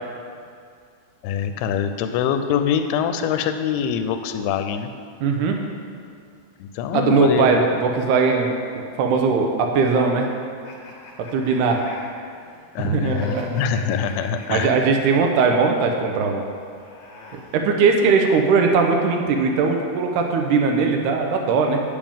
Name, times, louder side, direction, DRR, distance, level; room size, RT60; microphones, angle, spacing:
voice 1, 1.2-4.9 6.6-7.6 12.8-14.8, left 7 dB, 85° left, 8 dB, 2.5 m, -24 dB
voice 2, 5.2-5.6 6.9-10.3 11.3-11.8 12.8-13.5 14.5-16.5 17.3-21.8, right 4 dB, 85° right, 2 dB, 1.8 m, -20 dB
sound 1, 10.6-15.3 16.5-18.2, left 1 dB, 50° left, 2.0 m, -41 dB
10.0 x 8.9 x 3.6 m, 2.2 s
omnidirectional pair, 4.5 m